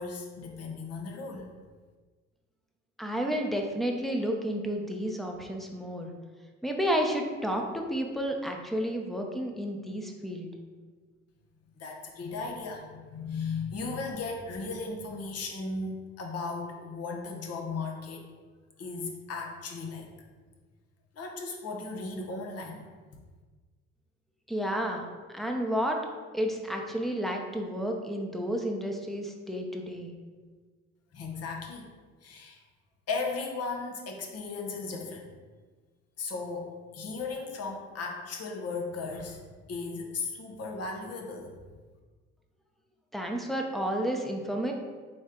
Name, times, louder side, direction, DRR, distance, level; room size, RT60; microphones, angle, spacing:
voice 1, 0.0-1.5 11.7-18.2 18.8-20.1 21.1-22.8 31.1-31.9 32.2-32.6 33.1-35.3 36.2-39.4 39.7-41.5, left 4 dB, 55° left, 2 dB, 0.9 m, -36 dB
voice 2, 3.0-6.1 6.6-10.5 24.5-26.0 26.3-30.1 43.1-44.7, equal, ahead, 2 dB, 0.7 m, -31 dB
4.1 x 3.2 x 3.7 m, 1.4 s
supercardioid pair, 65°, 29 cm